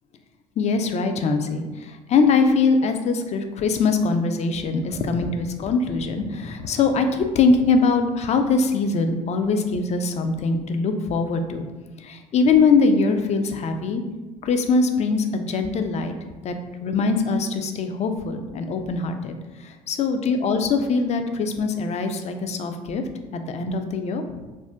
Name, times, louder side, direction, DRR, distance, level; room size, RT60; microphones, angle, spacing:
voice 1, 0.6-11.7 12.0-14.0 14.4-16.1 16.4-16.6 16.8-19.3 19.6-23.0 23.3-24.2, left 4 dB, 40° left, 7 dB, 0.4 m, -22 dB
2.5 x 2.1 x 3.4 m, 1.2 s
hypercardioid pair, 70°, 18 cm